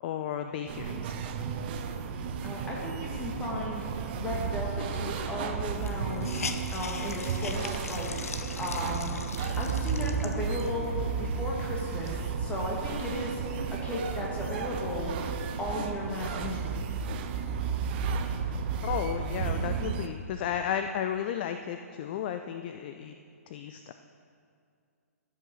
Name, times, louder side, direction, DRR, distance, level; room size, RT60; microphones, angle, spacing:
voice 1, 0.0-1.1 18.8-23.1 23.5-23.9, left 9 dB, 35° left, 8 dB, 0.4 m, -33 dB
sound 1, 0.7-20.1, right 6 dB, 35° right, 0.7 m, -33 dB
voice 2, 2.4-3.8 4.1-6.3 6.7-8.1 8.4-9.2 9.6-13.4 13.7-15.1 15.6-16.6, left 1 dB, 15° left, -3 dB, 2.1 m, -35 dB
Hiss, 5.0-5.1 5.3-5.4 5.8-10.8 11.4-11.5 11.9-13.2, left 5 dB, 65° left, 0.8 m, -40 dB
14.0 x 5.8 x 6.2 m, 2.3 s
figure-of-eight pair, 125°, 9 cm